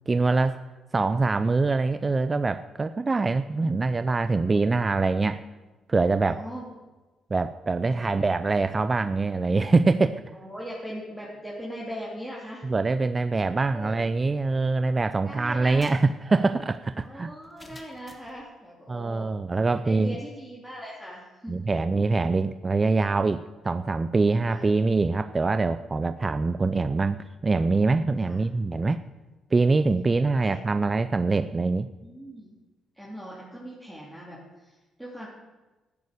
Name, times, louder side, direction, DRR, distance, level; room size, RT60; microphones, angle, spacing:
voice 1, 0.1-0.6 0.9-5.4 5.9-6.4 7.3-10.2 12.6-17.3 18.9-20.2 21.5-29.0 29.5-31.9, right 3 dB, 25° right, 11 dB, 0.5 m, -24 dB
voice 2, 3.4-4.0 6.3-6.6 7.8-8.3 10.3-12.6 13.7-14.0 15.2-15.9 17.0-19.3 19.8-21.5 24.5-24.6 28.2-28.4 30.4-30.6 32.0-32.6 32.9-35.3, equal, 5° right, -5 dB, 3.1 m, -40 dB
sound 1, 15.5-18.4, left 2 dB, 25° left, 1.9 m, -52 dB
13.5 x 9.6 x 6.7 m, 1.2 s
cardioid pair, 90°, 0 cm